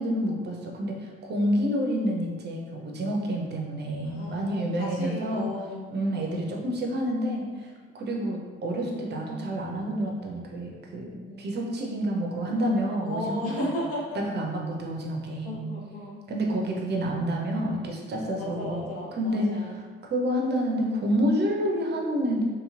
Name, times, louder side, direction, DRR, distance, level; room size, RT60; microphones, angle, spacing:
voice 1, 0.0-5.5 5.9-11.1 11.4-13.7 14.1-15.6 16.3-18.8 19.2-19.8 20.1-22.4, equal, 35° right, 0 dB, 0.6 m, -28 dB
voice 2, 4.0-6.4 11.3-11.7 13.0-14.2 15.4-16.2 18.4-19.7, left 1 dB, 45° left, -3 dB, 0.7 m, -35 dB
2.9 x 2.8 x 2.4 m, 1.4 s
figure-of-eight pair, 45°, 32 cm